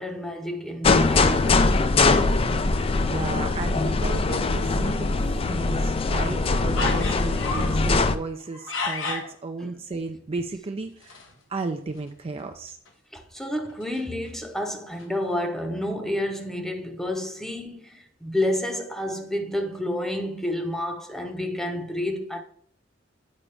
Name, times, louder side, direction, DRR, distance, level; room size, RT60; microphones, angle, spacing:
voice 1, 0.0-1.7 9.6-9.8 13.1-22.4, left 1 dB, ahead, 0.8 m, -29 dB
sound 1, 0.8-8.1, left 3 dB, 30° left, 0.4 m, -22 dB
voice 2, 2.4-11.2 11.5-12.8, right 3 dB, 30° right, 0.4 m, -34 dB
sound 2, 6.8-7.8 8.4-9.3 11.0-11.3 11.6-11.7 12.0-12.1 12.7-12.9 13.5-14.5 15.0-15.1, left 3 dB, 80° left, 1.2 m, -32 dB
8.5 x 5.0 x 3.3 m
head